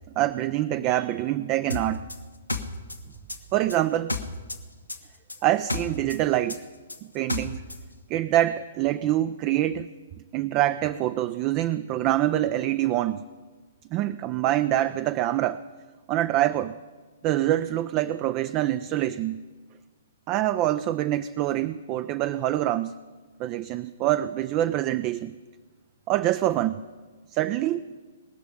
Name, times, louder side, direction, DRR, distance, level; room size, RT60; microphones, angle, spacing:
voice 1, 0.2-2.1 3.5-4.2 5.4-6.6 7.1-7.6 8.1-9.9 10.3-13.2 13.9-15.6 16.1-16.8 17.2-19.4 20.3-22.9 23.4-25.3 26.1-26.8 27.3-27.8, right 13 dB, 30° right, 14 dB, 0.4 m, -25 dB
sound 1, 1.7-4.6 4.9-7.8, left 2 dB, 90° left, 1.2 m, -32 dB
19.5 x 6.6 x 8.5 m, 1.4 s
figure-of-eight pair, 115°, 0 cm